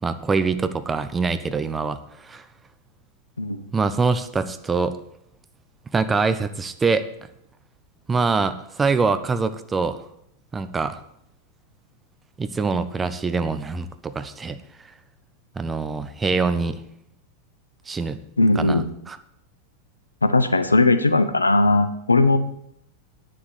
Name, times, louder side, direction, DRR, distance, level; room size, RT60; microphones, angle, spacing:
voice 1, 0.0-2.4 3.7-5.0 5.9-7.1 8.1-10.0 10.5-11.0 12.4-14.9 15.6-16.8 17.9-18.2 18.5-19.2, right 4 dB, 15° right, 11 dB, 0.8 m, -24 dB
voice 2, 18.4-18.8 20.2-22.4, left 2 dB, 80° left, 10 dB, 0.8 m, -18 dB
9.8 x 6.6 x 8.2 m, 0.73 s
figure-of-eight pair, 90°, 0 cm